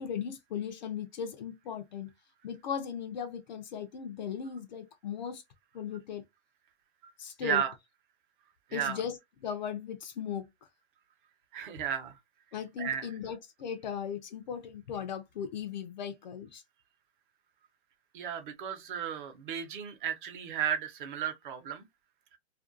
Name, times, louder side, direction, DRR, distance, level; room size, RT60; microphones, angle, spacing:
voice 1, 0.0-2.1 2.4-5.4 5.7-6.2 7.2-7.6 8.7-9.2 9.4-10.5 12.5-16.6, left 8 dB, 40° left, 0.4 m, -37 dB
voice 2, 7.4-7.7 8.7-9.0 11.5-12.2 12.8-13.1 18.1-21.9, right 8 dB, 45° right, 0.8 m, -34 dB
2.5 x 2.2 x 2.5 m
hypercardioid pair, 145°, 34 cm